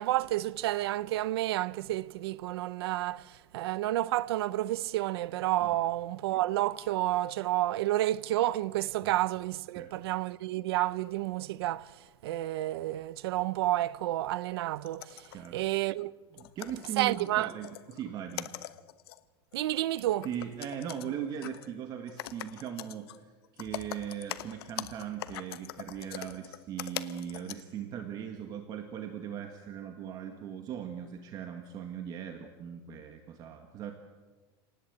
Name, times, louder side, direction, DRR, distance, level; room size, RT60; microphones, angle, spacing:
voice 1, 0.0-16.1 17.0-17.5 19.5-20.3, right 15 dB, 85° right, 0.8 m, -30 dB
voice 2, 9.8-10.1 15.3-15.6 16.3-18.5 20.2-33.9, right 9 dB, 30° right, 1.9 m, -39 dB
sound 1, 14.7-15.6 16.0-16.1 16.4-18.0 18.3-19.2 19.5-19.6 20.0-21.1 21.4-21.7 22.1-23.2 23.4-27.6, left 14 dB, 80° left, 1.1 m, -42 dB
29.0 x 19.0 x 8.2 m
supercardioid pair, 165°, 13 cm